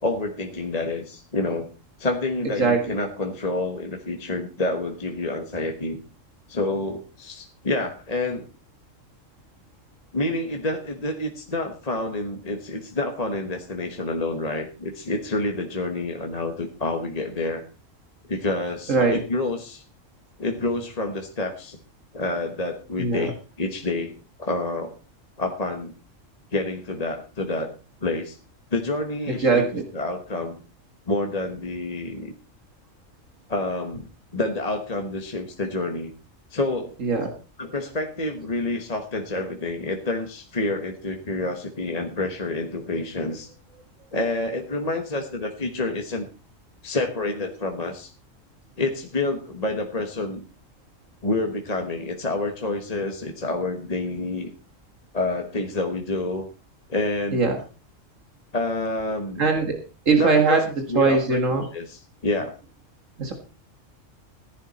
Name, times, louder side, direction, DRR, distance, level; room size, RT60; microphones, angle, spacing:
voice 1, 0.0-1.7 2.0-6.0 6.5-8.4 10.1-17.6 18.3-19.8 20.4-21.8 22.1-24.1 24.4-25.0 25.4-25.9 26.5-27.7 28.0-28.4 28.7-29.7 29.9-30.6 31.1-32.3 33.5-36.1 36.5-36.9 37.6-43.5 44.1-46.3 46.8-48.1 48.8-50.4 51.2-54.5 55.1-56.5 56.9-57.4 58.5-59.4 60.2-61.4 61.7-62.6, left 2 dB, 30° left, 4 dB, 1.4 m, -28 dB
voice 2, 18.9-19.2 23.0-23.3 29.3-29.8 37.0-37.3 57.3-57.6 59.4-59.8 60.1-60.7 60.9-61.7 63.2-63.3, right 4 dB, 75° right, 4 dB, 2.1 m, -20 dB
15.0 x 11.0 x 4.2 m, 0.34 s
omnidirectional pair, 1.3 m